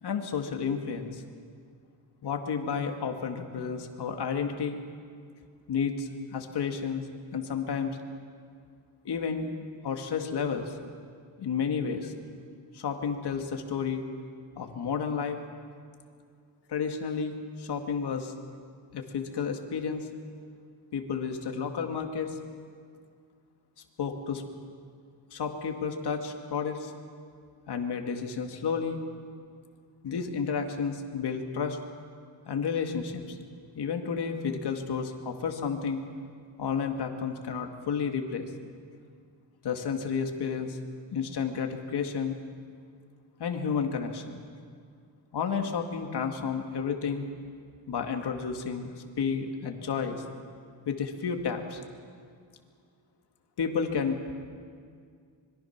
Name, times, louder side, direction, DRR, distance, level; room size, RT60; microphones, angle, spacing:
voice 1, 0.0-1.2 2.2-4.8 5.7-7.1 7.3-8.0 9.0-10.7 11.4-12.1 12.7-14.0 14.6-15.4 16.7-18.3 18.9-20.0 20.9-22.4 24.0-24.4 25.3-26.9 27.7-29.0 30.0-31.8 32.5-33.4 33.8-36.0 36.6-38.5 39.6-40.8 41.1-42.3 43.4-44.4 45.3-47.2 47.9-48.9 49.2-50.2 50.9-51.8 53.6-54.3, left 6 dB, 65° left, 4 dB, 2.2 m, -31 dB
25.0 x 22.5 x 6.0 m, 2.2 s
wide cardioid pair, 140°, 43 cm